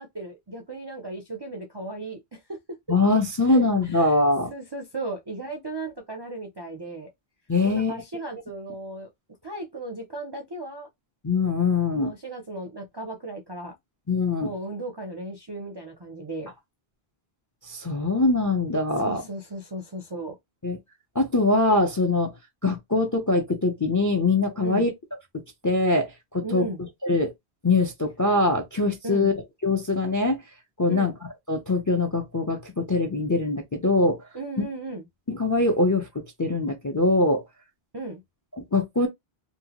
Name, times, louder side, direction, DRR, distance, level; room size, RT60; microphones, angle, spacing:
voice 1, 0.0-2.6 3.5-4.2 4.5-7.1 7.6-9.1 9.4-10.9 11.9-13.8 14.4-16.5 19.0-20.4 24.6-24.9 26.4-26.8 29.0-29.4 30.9-31.1 34.3-35.1 37.9-38.2, right 2 dB, 40° right, 0.4 m, -36 dB
voice 2, 2.9-4.5 7.5-8.0 11.2-12.1 14.1-14.5 17.6-19.2 20.6-20.8 21.1-22.3 22.6-24.9 25.6-26.7 27.0-27.3 27.6-29.3 29.6-30.4 30.8-31.1 31.5-34.2 35.3-37.4 38.6-39.1, left 2 dB, 30° left, 0.4 m, -23 dB
2.6 x 2.2 x 2.8 m
omnidirectional pair, 1.1 m